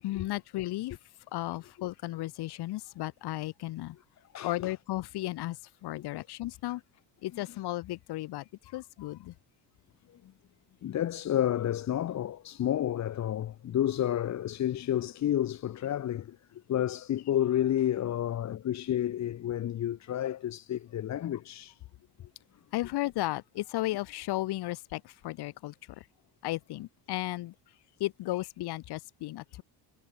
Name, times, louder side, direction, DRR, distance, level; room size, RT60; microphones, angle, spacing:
voice 1, 0.0-1.0 1.3-4.0 4.4-6.8 7.2-9.3 22.7-26.1 26.4-27.5 28.0-29.6, left 17 dB, 60° left, 7.4 m, -34 dB
voice 2, 4.3-4.7 10.8-21.8, left 11 dB, 35° left, 2.4 m, -30 dB
cardioid pair, 170°, 45 cm